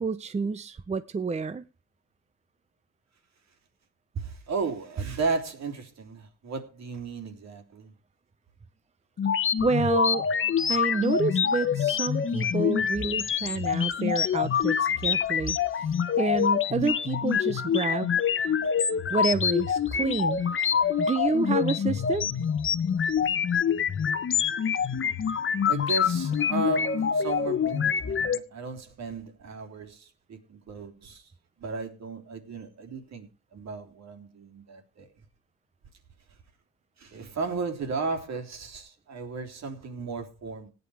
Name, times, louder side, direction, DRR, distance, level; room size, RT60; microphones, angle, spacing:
voice 1, 0.0-1.6 9.6-10.3 10.7-14.8 15.0-15.6 16.2-18.1 19.1-20.4 21.0-22.3, right 4 dB, 20° right, 0.7 m, -28 dB
voice 2, 4.1-7.9 25.7-31.2 31.6-35.1 37.0-40.7, right 4 dB, 60° right, 3.4 m, -34 dB
sound 1, 9.2-28.4, left 7 dB, 40° left, 1.1 m, -26 dB
17.0 x 9.5 x 4.9 m
cardioid pair, 90°, 30 cm